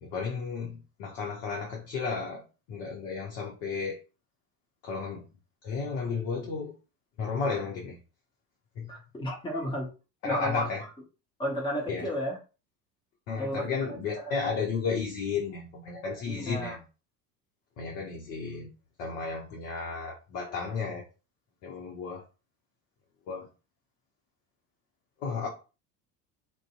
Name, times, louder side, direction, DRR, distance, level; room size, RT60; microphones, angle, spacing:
voice 1, 0.0-2.4 2.7-4.0 4.8-5.3 5.6-6.7 7.2-8.0 8.8-8.9 10.2-10.8 11.9-12.1 13.3-16.8 17.8-18.7 19.0-21.0 21.6-22.2 23.3-23.5 25.2-25.5, left 5 dB, 55° left, 0.8 m, -33 dB
voice 2, 8.9-9.9 10.2-10.7 11.4-12.4 13.4-14.4 16.2-16.8, equal, 10° left, 0.8 m, -33 dB
2.5 x 2.2 x 2.3 m
figure-of-eight pair, 65°, 49 cm